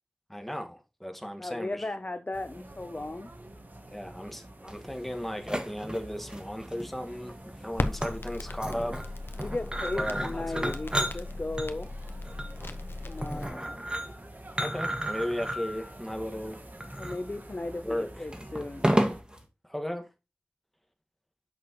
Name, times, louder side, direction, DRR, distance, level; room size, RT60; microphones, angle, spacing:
voice 1, 0.3-1.9 3.9-9.0 9.9-10.7 14.5-16.6 17.8-18.2 19.6-20.1, equal, 5° left, 1.6 m, -35 dB
voice 2, 1.4-3.3 9.4-11.9 13.0-13.9 17.0-18.9, left 2 dB, 40° left, 0.5 m, -36 dB
sound 1, 2.3-19.2, right 1 dB, 50° right, 1.4 m, -48 dB
sound 2, 4.7-19.4, right 1 dB, 25° right, 1.6 m, -33 dB
Crackle, 7.7-13.5, left 2 dB, 75° left, 0.9 m, -37 dB
8.3 x 6.1 x 3.0 m
wide cardioid pair, 50°, 4 cm